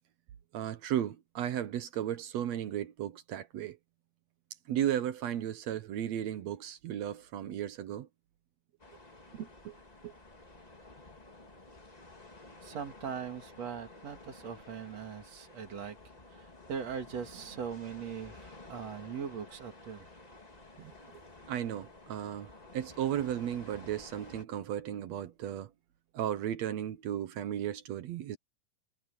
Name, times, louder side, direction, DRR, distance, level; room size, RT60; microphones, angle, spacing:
voice 1, 0.5-3.8 4.7-8.1 9.3-9.8 10.0-10.1 20.8-20.9 21.5-25.7 26.1-28.4, right 10 dB, 70° right, 1.8 m, -35 dB
sound 1, 8.8-24.4, left 2 dB, 20° left, 1.2 m, -53 dB
voice 2, 12.6-20.1, right 7 dB, 50° right, 3.3 m, -41 dB
omnidirectional pair, 4.0 m